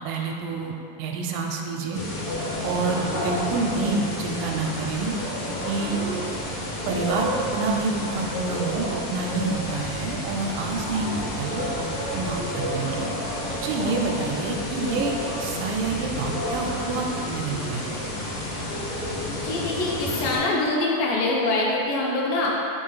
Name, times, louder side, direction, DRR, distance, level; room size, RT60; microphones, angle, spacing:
voice 1, 0.0-2.0 2.6-5.2 5.4-6.0 6.9-11.9 12.1-13.1 13.6-18.0, right 4 dB, 80° right, 1 dB, 2.2 m, -28 dB
sound 1, 1.9-20.4, left 1 dB, 55° left, 1.2 m, -30 dB
voice 2, 19.4-22.5, left 2 dB, 80° left, -3 dB, 2.5 m, -24 dB
5.5 x 3.8 x 5.6 m, 2.8 s
omnidirectional pair, 3.9 m